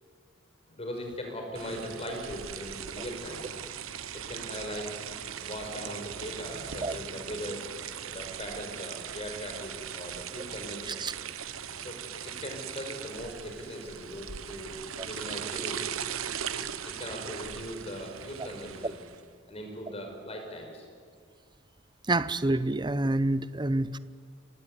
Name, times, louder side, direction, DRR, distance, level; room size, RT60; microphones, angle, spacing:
voice 1, 0.7-3.5 4.1-4.9 5.4-7.7 8.1-11.0 11.8-15.9 16.8-19.0 19.5-20.8, equal, 30° left, 5.4 m, -39 dB
sound 1, 1.5-19.2, right 8 dB, 90° right, 1.1 m, -39 dB
voice 2, 22.1-24.0, right 2 dB, 20° right, 0.7 m, -28 dB
27.5 x 16.5 x 9.7 m
head